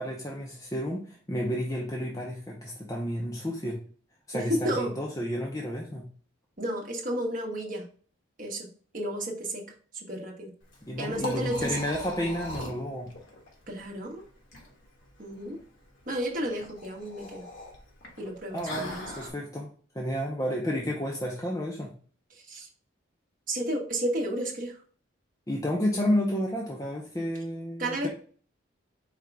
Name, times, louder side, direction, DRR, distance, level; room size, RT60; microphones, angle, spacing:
voice 1, 0.0-3.8 4.3-6.1 10.8-13.1 18.5-19.7 19.9-21.9 25.5-28.1, equal, 15° left, -2 dB, 0.6 m, -31 dB
voice 2, 4.3-4.9 6.6-7.8 8.4-8.7 8.9-9.6 9.9-10.5 11.0-11.8 13.7-14.2 15.2-15.6 16.1-17.4 18.2-19.1 22.3-22.7 23.5-24.8 27.8-28.1, right 1 dB, 40° right, 0 dB, 1.0 m, -32 dB
Liquid, 10.6-19.3, left 1 dB, 65° left, 1.2 m, -41 dB
4.9 x 2.8 x 3.4 m, 0.43 s
head